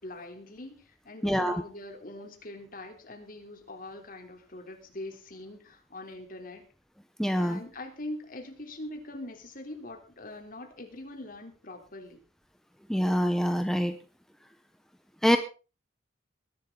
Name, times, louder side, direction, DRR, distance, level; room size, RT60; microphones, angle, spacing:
voice 1, 0.0-6.6 7.4-12.2, left 1 dB, 50° left, 4 dB, 3.5 m, -43 dB
voice 2, 1.2-1.6 7.2-7.6 12.9-13.9 15.2-15.4, equal, ahead, 7 dB, 0.9 m, -25 dB
20.5 x 11.5 x 3.9 m, 0.35 s
head